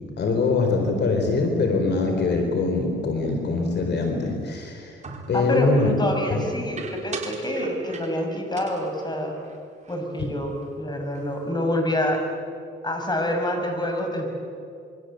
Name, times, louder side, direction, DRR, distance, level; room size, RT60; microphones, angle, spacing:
voice 1, 0.0-5.0 5.3-5.9 6.3-6.5, left 3 dB, 60° left, 4 dB, 4.4 m, -23 dB
sound 1, 5.0-5.6 6.8-8.3 8.6-10.3 10.6-10.7 11.0-11.5, right 4 dB, 35° right, 4.2 m, -40 dB
voice 2, 5.3-9.4 9.9-12.2 12.8-14.3, left 1 dB, 20° left, 3 dB, 6.7 m, -27 dB
28.0 x 25.0 x 8.1 m, 2.5 s
cardioid pair, 90°, 20 cm